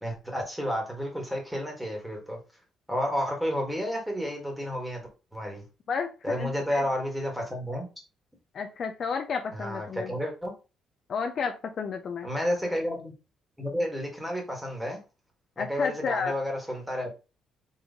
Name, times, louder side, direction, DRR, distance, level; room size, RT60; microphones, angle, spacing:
voice 1, 0.0-2.4 2.9-5.0 5.3-5.6 6.2-7.9 9.6-10.5 12.2-13.1 13.6-15.0 15.6-17.1, equal, 5° right, 1 dB, 1.4 m, -31 dB
voice 2, 5.9-6.8 8.5-10.1 11.1-12.3 15.6-16.3, left 6 dB, 40° left, 6 dB, 0.4 m, -32 dB
4.0 x 3.1 x 3.5 m, 0.31 s
cardioid pair, 150°, 0 cm